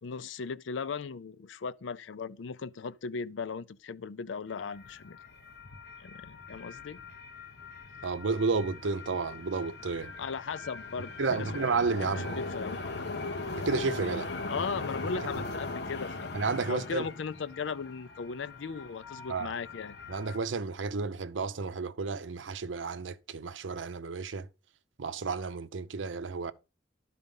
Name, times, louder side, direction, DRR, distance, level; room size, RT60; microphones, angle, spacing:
voice 1, 0.0-5.2 6.0-7.0 10.2-11.5 12.0-12.8 14.5-16.3 16.7-20.0, left 5 dB, 85° left, 0.5 m, -37 dB
sound 1, 4.5-20.4, left 3 dB, 60° left, 1.1 m, -40 dB
sound 2, 7.9-20.0, equal, 15° right, 5.7 m, -58 dB
voice 2, 8.0-10.1 11.2-12.4 13.5-14.3 15.2-15.3 16.3-17.1 19.3-19.5 20.1-24.5 25.0-26.5, right 4 dB, 85° right, 0.6 m, -32 dB
12.0 x 4.2 x 5.3 m
head